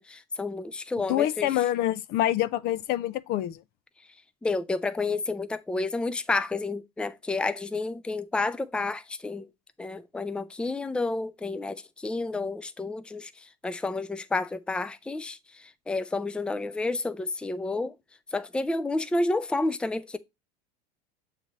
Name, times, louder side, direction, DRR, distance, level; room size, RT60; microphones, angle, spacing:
voice 1, 0.0-1.5 4.4-9.5 9.8-17.9 18.3-20.2, left 3 dB, 5° left, 0.5 m, -30 dB
voice 2, 1.1-3.6, left 13 dB, 50° left, 0.5 m, -26 dB
7.2 x 3.3 x 4.0 m
hypercardioid pair, 90°, 21 cm